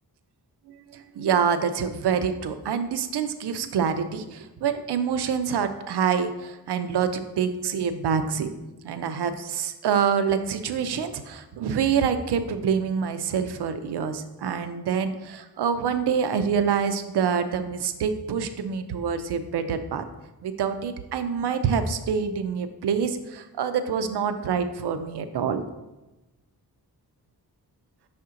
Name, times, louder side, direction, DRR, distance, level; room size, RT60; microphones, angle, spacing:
voice 1, 0.7-8.5 8.8-20.0 20.4-25.6, right 7 dB, 90° right, 10 dB, 0.6 m, -26 dB
5.9 x 4.3 x 3.7 m, 1.0 s
wide cardioid pair, 170°, 39 cm